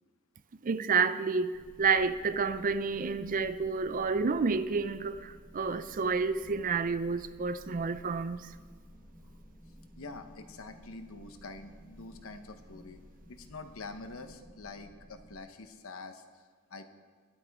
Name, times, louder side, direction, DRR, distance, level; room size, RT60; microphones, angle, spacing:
voice 1, 0.6-8.5, right 4 dB, 40° right, 13 dB, 0.5 m, -30 dB
sound 1, 1.5-15.4, equal, 5° left, 1.3 m, -54 dB
voice 2, 9.9-13.0 13.3-16.9, left 3 dB, 65° left, 8 dB, 1.0 m, -46 dB
21.5 x 8.6 x 3.6 m, 1.6 s
head